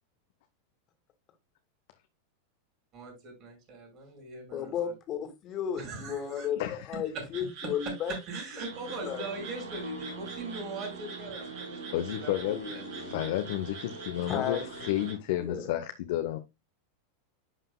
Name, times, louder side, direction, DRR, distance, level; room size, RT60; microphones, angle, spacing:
voice 1, 2.9-4.9 5.7-6.5 7.1-7.2 8.1-12.8, right 2 dB, 40° right, 5.1 m, -41 dB
voice 2, 4.5-6.6 6.9-8.1 8.8-9.3 12.5-13.3 14.3-15.0 15.4-15.7, left 8 dB, 35° left, 2.1 m, -34 dB
voice 3, 6.6-7.0 11.9-12.6 13.0-16.4, left 13 dB, 55° left, 0.8 m, -31 dB
sound 1, 7.3-15.1, right 4 dB, 55° right, 3.5 m, -46 dB
sound 2, 8.7-15.2, right 4 dB, 75° right, 1.3 m, -44 dB
11.0 x 5.5 x 2.3 m
figure-of-eight pair, 90°, 0 cm